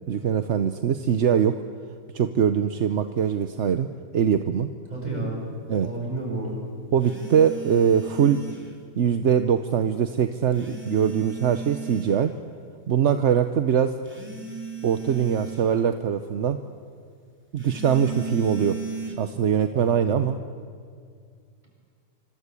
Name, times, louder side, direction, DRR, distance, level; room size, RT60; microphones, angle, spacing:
voice 1, 0.1-1.6 2.1-4.7 5.7-5.9 6.9-8.4 9.0-12.3 12.9-14.0 14.8-16.6 17.5-18.8 19.2-20.4, right 8 dB, 50° right, 9 dB, 1.0 m, -22 dB
voice 2, 4.9-5.4 5.8-6.6 19.7-20.2, right 2 dB, 25° right, -2 dB, 8.2 m, -31 dB
sound 1, 7.0-8.8 10.5-12.2 14.1-15.8 17.6-19.1, right 4 dB, 5° right, 3.5 m, -36 dB
25.5 x 25.0 x 8.4 m, 2.2 s
omnidirectional pair, 1.8 m